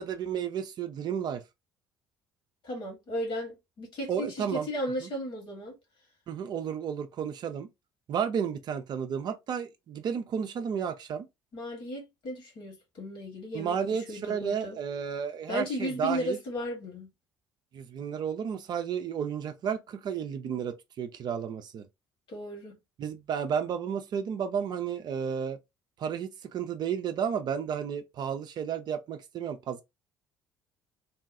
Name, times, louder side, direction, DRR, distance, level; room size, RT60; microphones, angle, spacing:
voice 1, 0.0-1.4 4.1-4.7 5.0-5.1 6.3-7.7 8.1-11.3 13.5-16.4 17.7-21.9 23.0-25.6 26.0-29.8, right 7 dB, 40° right, 0.4 m, -32 dB
voice 2, 2.6-5.8 11.5-14.8 15.5-17.1 22.3-22.8, equal, 50° left, 1.5 m, -35 dB
2.7 x 2.3 x 2.6 m
figure-of-eight pair, 55°, 11 cm